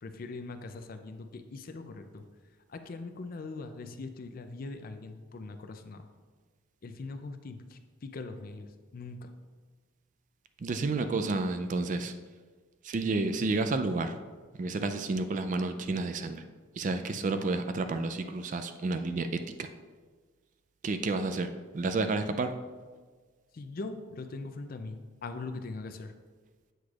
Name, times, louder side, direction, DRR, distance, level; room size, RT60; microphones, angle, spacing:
voice 1, 0.0-2.2 2.7-6.1 6.8-9.3 23.5-26.1, left 3 dB, 45° left, 8 dB, 0.4 m, -41 dB
voice 2, 10.6-12.1 12.8-14.1 14.6-16.4 16.8-19.7 20.8-21.5 21.7-22.5, right 3 dB, 35° right, 8 dB, 0.3 m, -30 dB
7.8 x 6.4 x 2.4 m, 1.5 s
head